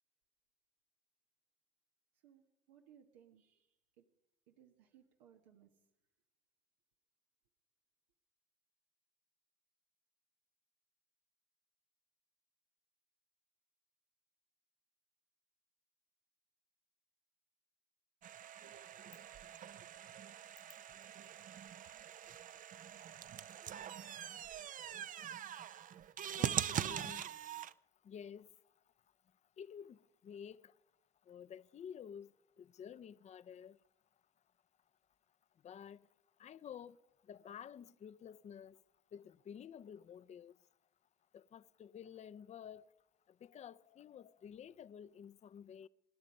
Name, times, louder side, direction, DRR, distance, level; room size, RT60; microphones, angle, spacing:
voice 1, 2.1-4.1 4.5-5.9, right 9 dB, 90° right, 1.3 m, -65 dB
sound 1, 18.2-27.7, right 10 dB, 40° right, 0.6 m, -43 dB
voice 2, 24.9-25.4 26.4-27.5 27.9-28.8 29.3-30.8 31.2-33.8 35.6-36.1 36.4-38.8 39.1-40.7 41.3-42.9 43.3-45.9, left 8 dB, 35° left, 0.6 m, -52 dB
26.0 x 10.5 x 5.4 m
supercardioid pair, 80°, 20 cm